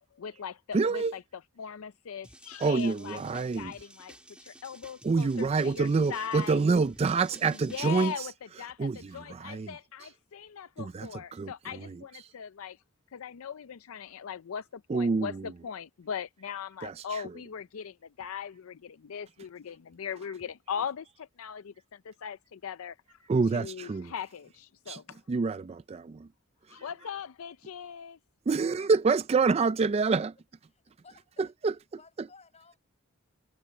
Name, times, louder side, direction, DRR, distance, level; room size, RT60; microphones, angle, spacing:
voice 1, 0.2-6.6 7.5-12.8 13.1-25.2 26.7-28.2, left 7 dB, 70° left, 0.5 m, -40 dB
voice 2, 0.7-1.1 2.6-3.7 5.0-8.3 8.8-9.7 10.8-11.5 14.9-15.4 16.8-16.9 23.3-24.1 24.9-25.0 25.3-25.6 28.5-30.3 31.6-31.7, right 4 dB, 30° right, 0.3 m, -26 dB
sound 1, 2.2-8.2, right 1 dB, 5° right, 2.7 m, -53 dB
voice 3, 30.7-31.5 31.9-32.8, left 4 dB, 30° left, 7.8 m, -57 dB
head